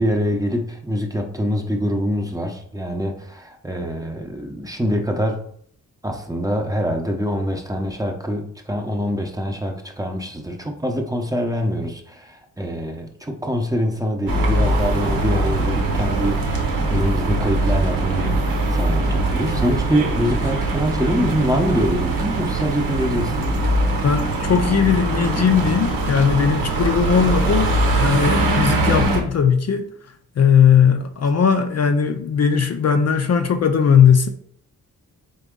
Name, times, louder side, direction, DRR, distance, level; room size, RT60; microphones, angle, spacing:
voice 1, 0.0-5.5 6.0-16.4 16.9-18.4 18.7-23.5, equal, 10° right, 0.7 m, -24 dB
sound 1, 14.3-29.2, right 2 dB, 75° right, 1.0 m, -21 dB
voice 2, 24.0-27.7 28.0-29.9 30.4-34.3, left 7 dB, 50° left, 0.5 m, -18 dB
4.0 x 3.5 x 3.7 m
cardioid pair, 85°, 35 cm